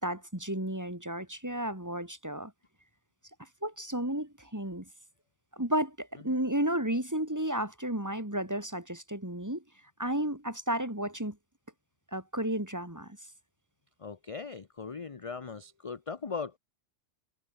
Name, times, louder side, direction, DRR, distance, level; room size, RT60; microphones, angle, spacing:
voice 1, 0.0-2.5 3.6-4.9 5.5-9.6 10.0-11.4 12.1-13.2, right 1 dB, 15° right, 3.0 m, -32 dB
voice 2, 14.0-16.6, left 5 dB, 30° left, 0.9 m, -39 dB
omnidirectional pair, 1.2 m